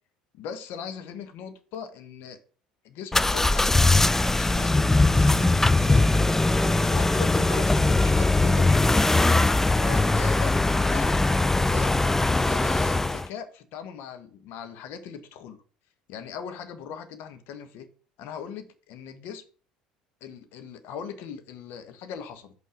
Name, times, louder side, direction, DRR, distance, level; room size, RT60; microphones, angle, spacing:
voice 1, 0.3-2.4 2.8-3.8 4.3-6.1 6.8-9.0 9.8-11.2 11.5-11.9 12.4-15.6 16.1-17.9 18.2-19.4 20.2-22.5, left 7 dB, 60° left, 1.1 m, -39 dB
sound 1, 3.1-13.3, left 2 dB, 10° left, 0.4 m, -21 dB
6.3 x 5.5 x 5.1 m
figure-of-eight pair, 65°, 4 cm